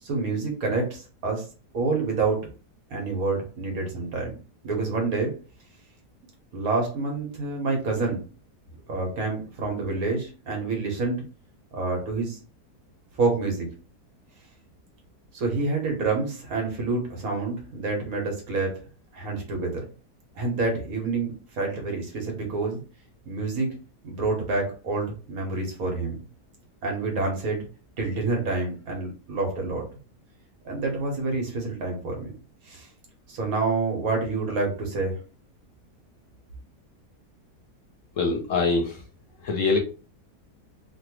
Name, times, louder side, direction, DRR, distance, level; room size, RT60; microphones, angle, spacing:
voice 1, 0.0-1.4 1.7-2.5 2.9-4.4 4.6-5.3 6.5-8.2 8.9-11.2 11.7-12.4 13.2-13.7 15.3-18.8 19.1-19.8 20.4-22.8 23.3-23.7 24.0-26.2 26.8-27.6 28.0-29.8 30.6-32.3 32.7-32.9 33.3-35.2, right 3 dB, 65° right, 1 dB, 1.4 m, -27 dB
voice 2, 38.2-39.0 39.4-39.8, left 3 dB, 65° left, 2 dB, 0.9 m, -24 dB
3.2 x 2.2 x 3.0 m, 0.35 s
omnidirectional pair, 1.7 m